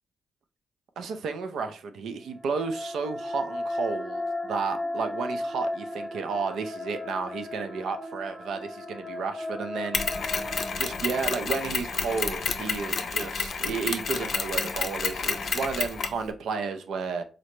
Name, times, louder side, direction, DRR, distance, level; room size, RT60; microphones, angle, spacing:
voice 1, 1.0-10.1 10.8-17.2, right 5 dB, 80° right, 0.4 m, -32 dB
sound 1, 2.3-11.6, left 1 dB, ahead, 0.9 m, -35 dB
Mechanisms, 9.9-16.2, left 5 dB, 65° left, 0.5 m, -30 dB
3.8 x 2.1 x 3.0 m
cardioid pair, 65°, 0 cm